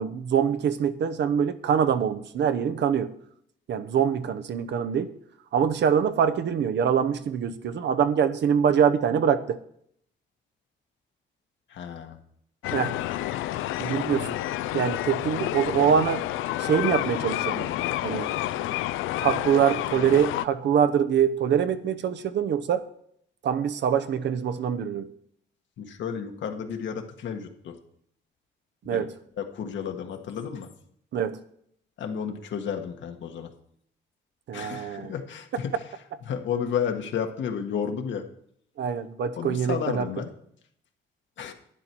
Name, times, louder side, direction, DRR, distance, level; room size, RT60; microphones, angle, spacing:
voice 1, 0.0-3.1 3.7-5.1 5.5-9.6 12.7-13.0 13.8-14.4 14.7-16.2 16.6-17.7 18.0-18.3 19.2-22.8 23.4-25.1 28.9-29.1 31.1-31.4 34.5-35.1 38.8-40.1, right 8 dB, 60° right, 10 dB, 0.8 m, -24 dB
voice 2, 11.7-12.2 25.8-27.8 28.9-29.1 29.4-30.7 32.0-33.5 34.5-35.8 36.2-38.2 39.4-40.3 41.4-41.5, left 7 dB, 70° left, 5 dB, 1.4 m, -32 dB
sound 1, 12.6-20.5, left 14 dB, 90° left, 0.5 m, -29 dB
11.5 x 9.8 x 4.5 m, 0.70 s
cardioid pair, 90°, 20 cm